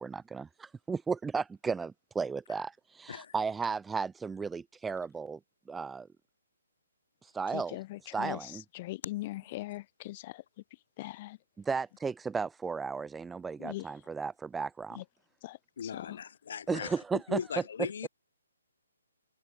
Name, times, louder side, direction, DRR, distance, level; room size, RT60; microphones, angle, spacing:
voice 1, 0.0-5.4 5.7-6.1 7.2-7.8 8.1-8.6 11.6-15.0 16.7-17.4, right 5 dB, 5° right, 0.7 m, -34 dB
voice 2, 7.5-10.4 11.0-11.4 13.6-13.9 14.9-15.0 15.4-16.2, left 18 dB, 30° left, 2.3 m, -41 dB
voice 3, 15.8-18.1, left 7 dB, 55° left, 2.1 m, -38 dB
figure-of-eight pair, 140°, 0 cm